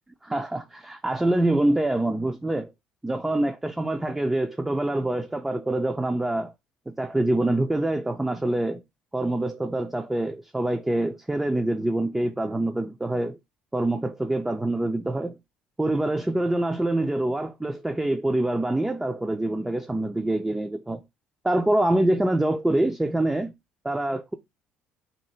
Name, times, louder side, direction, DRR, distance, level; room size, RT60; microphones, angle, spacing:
voice 1, 0.2-2.7 3.0-6.5 6.9-8.8 9.1-13.4 13.7-15.4 15.8-21.0 21.4-23.5 23.8-24.3, right 1 dB, 10° right, 0.4 m, -25 dB
2.8 x 2.6 x 4.2 m
figure-of-eight pair, 55°, 4 cm